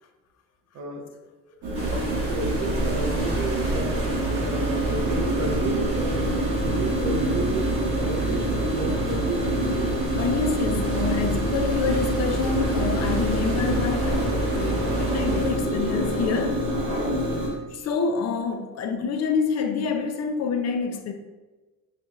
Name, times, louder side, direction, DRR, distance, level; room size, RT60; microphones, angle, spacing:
voice 1, 0.7-1.1 1.5-1.6 2.2-7.7 8.0-9.9, right 2 dB, 60° right, 1 dB, 0.8 m, -32 dB
sound 1, 1.6-17.5, right 1 dB, 80° right, 1.4 m, -27 dB
sound 2, 1.7-15.5, right 3 dB, 40° right, 1.3 m, -30 dB
voice 2, 10.2-16.6 17.7-21.1, left 5 dB, 50° left, 5 dB, 0.6 m, -27 dB
5.0 x 2.9 x 2.4 m, 1.2 s
supercardioid pair, 85°, 35 cm